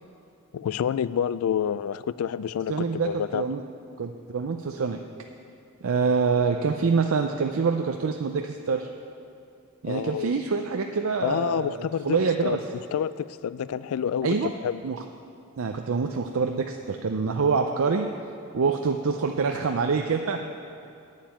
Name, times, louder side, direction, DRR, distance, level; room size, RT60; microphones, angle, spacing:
voice 1, 0.5-3.4 9.8-10.3 11.2-12.2 12.4-12.6 12.9-14.4 14.6-14.8, left 8 dB, 85° left, 17 dB, 0.3 m, -28 dB
voice 2, 2.7-3.6 4.0-5.0 5.8-8.9 9.8-12.6 14.2-14.5 14.8-15.0 15.6-18.1 18.5-20.5, right 5 dB, 70° right, 4 dB, 0.5 m, -26 dB
9.0 x 7.4 x 8.6 m, 2.5 s
head